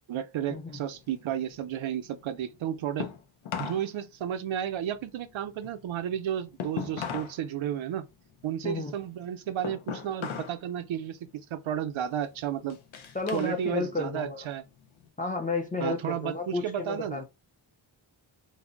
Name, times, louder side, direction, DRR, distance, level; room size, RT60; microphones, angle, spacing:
voice 1, 0.1-3.1 3.6-8.0 8.4-12.8 13.3-14.6 15.8-17.2, right 10 dB, 75° right, 0.6 m, -32 dB
sound 1, 0.8-3.9 4.2-7.4 7.7-10.6 11.0-11.4 11.9-13.6 13.9-15.1, left 7 dB, 80° left, 0.7 m, -40 dB
voice 2, 8.6-8.9 13.1-14.5 15.2-17.2, left 3 dB, 20° left, 0.4 m, -32 dB
2.6 x 2.0 x 3.7 m
wide cardioid pair, 170°, 47 cm